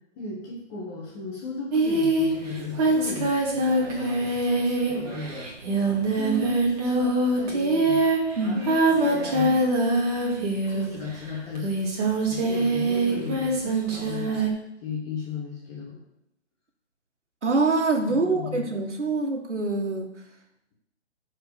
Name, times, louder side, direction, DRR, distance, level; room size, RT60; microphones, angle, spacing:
voice 1, 0.1-3.3 3.7-5.3 6.1-8.0 8.9-9.6 10.7-11.7 12.2-14.3 14.8-16.0 18.1-18.7, left 3 dB, 20° left, -4 dB, 1.6 m, -35 dB
Singing, 1.7-11.1 11.6-14.5, right 2 dB, 35° right, 2.4 m, -24 dB
voice 2, 8.4-8.7 17.4-20.1, right 3 dB, 75° right, 2 dB, 2.0 m, -25 dB
10.5 x 4.7 x 6.7 m, 0.80 s
figure-of-eight pair, 150°, 35 cm